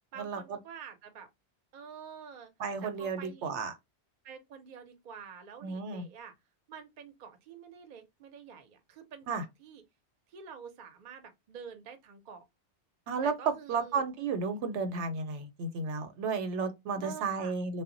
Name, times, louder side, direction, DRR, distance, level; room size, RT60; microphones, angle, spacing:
voice 1, 0.1-1.3 1.7-2.5 2.8-3.5 4.2-6.3 6.7-9.8 10.3-12.4 13.2-14.0 16.9-17.6, right 6 dB, 55° right, 0.6 m, -48 dB
voice 2, 2.6-3.7 5.6-6.0 9.3-9.4 13.1-17.8, right 4 dB, 80° right, 0.9 m, -33 dB
2.1 x 2.0 x 3.7 m
omnidirectional pair, 1.2 m